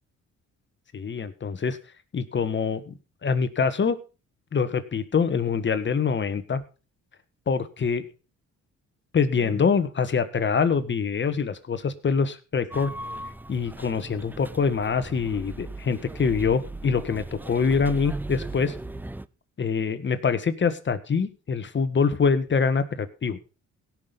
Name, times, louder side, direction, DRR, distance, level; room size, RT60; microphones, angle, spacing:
voice 1, 0.9-1.8 2.1-2.9 3.2-4.0 4.5-6.6 7.5-8.0 9.1-12.9 13.5-18.8 19.6-23.4, left 5 dB, 40° left, 11 dB, 1.5 m, -25 dB
sound 1, 12.7-19.3, right 2 dB, 5° right, 0.5 m, -38 dB
17.0 x 6.2 x 5.2 m, 0.33 s
cardioid pair, 90°, 30 cm